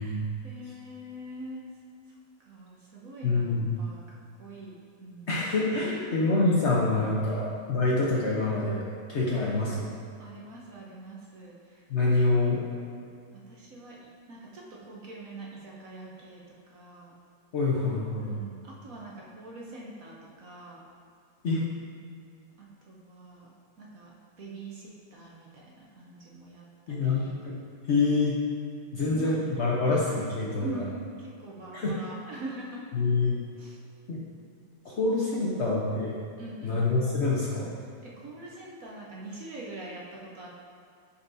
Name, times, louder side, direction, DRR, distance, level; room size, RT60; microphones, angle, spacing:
voice 1, 0.0-1.7 2.4-4.0 4.4-5.4 5.8-6.2 7.3-7.4 9.3-9.7 10.2-12.8 13.3-17.2 18.2-20.8 22.6-23.5 23.8-27.4 29.0-29.3 29.8-30.0 30.5-32.9 33.5-33.8 34.9-35.0 35.3-35.4 36.4-36.9 37.8-40.7, right 2 dB, 55° right, -4 dB, 1.0 m, -44 dB
voice 2, 3.2-3.7 5.3-8.8 9.1-9.9 11.9-12.6 17.5-18.3 21.4-21.6 26.9-27.5 27.9-28.4 28.9-30.8 31.7-31.9 32.9-33.4 34.1-34.2 34.8-36.2 36.6-37.7, left 3 dB, 65° left, -5 dB, 0.7 m, -26 dB
10.0 x 4.3 x 2.7 m, 2.3 s
omnidirectional pair, 2.2 m